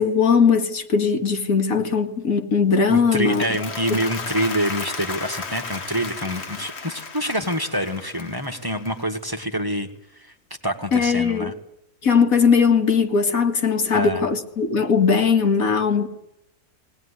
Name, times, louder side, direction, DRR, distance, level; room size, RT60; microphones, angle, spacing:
voice 1, 0.0-3.4 10.9-11.5 12.0-16.1, left 5 dB, 80° left, 2.3 m, -19 dB
voice 2, 2.9-10.3 10.6-11.5 13.9-14.3, equal, 15° right, 1.7 m, -26 dB
Applause, 3.1-9.4, left 4 dB, 50° left, 1.6 m, -34 dB
20.5 x 18.5 x 9.9 m
omnidirectional pair, 1.5 m